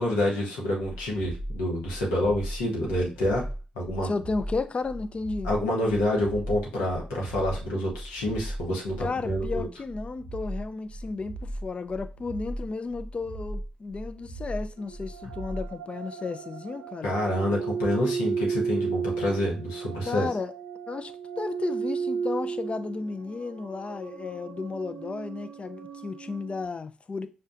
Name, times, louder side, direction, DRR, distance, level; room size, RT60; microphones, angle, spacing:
voice 1, 0.0-3.4 3.7-4.1 5.4-9.7 17.0-20.3, left 1 dB, 90° left, 0.9 m, -27 dB
sound 1, 0.8-15.7, right 1 dB, 60° right, 0.7 m, -38 dB
voice 2, 4.0-5.5 9.0-17.1 20.1-20.5 20.9-27.3, left 4 dB, 40° left, 0.4 m, -33 dB
sound 2, 14.8-26.6, right 6 dB, 85° right, 0.4 m, -34 dB
5.6 x 2.2 x 2.5 m
hypercardioid pair, 40°, 3 cm